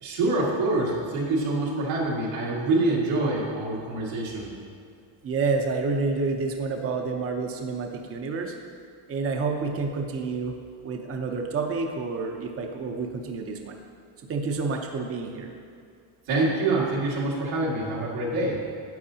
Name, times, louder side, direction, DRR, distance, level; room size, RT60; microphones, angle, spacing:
voice 1, 0.0-4.5 16.3-18.6, right 2 dB, 90° right, -5 dB, 2.2 m, -26 dB
voice 2, 5.2-8.5 9.1-10.6 10.8-13.8 14.3-15.5, right 4 dB, 30° right, 3 dB, 0.6 m, -29 dB
10.5 x 7.9 x 2.8 m, 2.4 s
cardioid pair, 145°, 49 cm